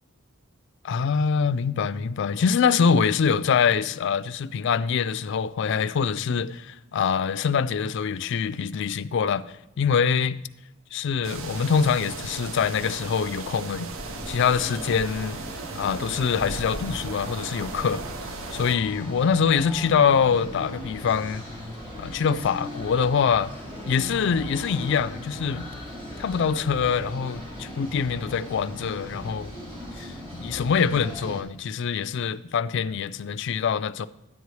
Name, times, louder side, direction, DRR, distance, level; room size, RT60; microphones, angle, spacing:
voice 1, 0.8-9.4 9.8-10.3 10.9-13.9 14.3-15.4 15.8-18.0 18.5-21.4 22.0-23.5 23.9-25.7 26.2-29.5 30.0-34.1, left 6 dB, 55° left, 0.3 m, -24 dB
sound 1, 11.2-18.8, right 4 dB, 65° right, 0.6 m, -37 dB
sound 2, 13.9-31.4, left 1 dB, 25° right, 2.0 m, -38 dB
11.0 x 8.2 x 3.1 m
head